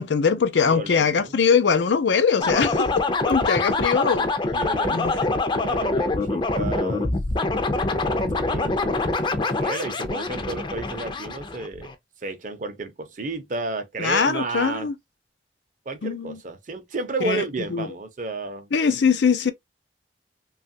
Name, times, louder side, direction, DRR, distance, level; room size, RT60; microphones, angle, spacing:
voice 1, 0.0-4.3 4.9-5.1 14.0-14.9 16.0-16.3 17.2-17.4 17.7-17.9 18.7-19.5, left 6 dB, 85° left, 0.5 m, -21 dB
voice 2, 0.7-1.4 4.5-7.1 8.4-11.9 12.2-14.9 15.9-18.7, right 3 dB, 45° right, 0.6 m, -32 dB
sound 1, 2.4-11.9, left 2 dB, 25° left, 0.5 m, -25 dB
3.0 x 2.3 x 2.6 m
head